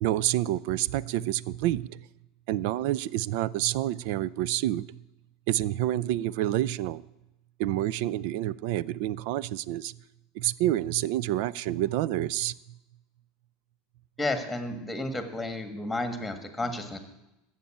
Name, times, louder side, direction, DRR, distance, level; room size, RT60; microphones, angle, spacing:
voice 1, 0.0-2.0 2.5-4.8 5.5-7.0 7.6-9.9 10.4-12.5, right 14 dB, 65° right, 21 dB, 0.4 m, -28 dB
voice 2, 14.2-17.0, left 2 dB, 5° left, 8 dB, 1.6 m, -32 dB
12.5 x 8.1 x 8.7 m, 0.92 s
supercardioid pair, 150°, 0 cm